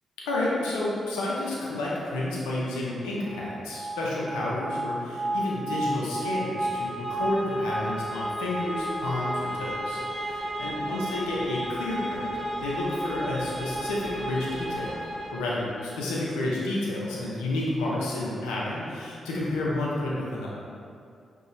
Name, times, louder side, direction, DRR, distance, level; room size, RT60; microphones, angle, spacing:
voice 1, 0.3-15.0 15.3-20.5, left 1 dB, 85° left, -5 dB, 0.6 m, -30 dB
sound 1, 3.2-16.1, right 1 dB, 35° right, 0.8 m, -33 dB
5.3 x 2.3 x 3.1 m, 2.4 s
hypercardioid pair, 45°, 0 cm